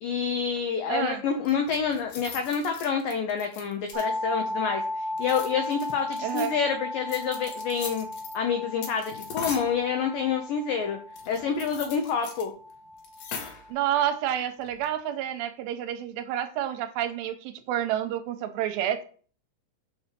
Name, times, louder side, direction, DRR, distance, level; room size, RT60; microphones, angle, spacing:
voice 1, 0.0-8.1 8.3-11.0 11.3-12.5, left 6 dB, 85° left, 2.0 m, -28 dB
voice 2, 0.9-1.2 6.2-6.6 13.7-19.0, right 11 dB, 85° right, 2.7 m, -29 dB
sound 1, 1.4-4.3 5.1-6.5 7.1-8.4 8.8-9.8 11.2-12.4 12.7-12.8 13.0-13.7 14.6-14.9, left 6 dB, 60° left, 3.0 m, -40 dB
sound 2, 3.9-13.7, left 1 dB, 15° right, 3.7 m, -36 dB
6.3 x 5.4 x 6.7 m
omnidirectional pair, 5.2 m